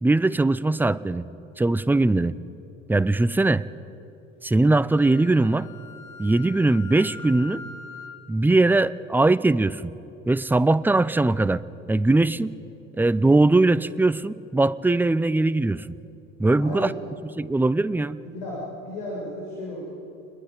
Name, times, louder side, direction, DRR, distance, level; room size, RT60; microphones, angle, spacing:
voice 1, 0.0-1.2 1.6-2.4 2.9-3.6 4.4-5.7 6.2-7.6 8.3-9.9 10.3-11.6 11.9-12.5 13.0-16.0 16.4-16.9 17.4-18.2, right 2 dB, 5° right, 16 dB, 0.5 m, -20 dB
Wind instrument woodwind instrument, 4.9-8.2, left 4 dB, 80° left, 2.1 m, -42 dB
voice 2, 16.6-17.0 18.2-19.9, left 1 dB, 65° left, -5 dB, 7.1 m, -34 dB
29.0 x 21.5 x 5.1 m, 2.8 s
figure-of-eight pair, 65°, 39 cm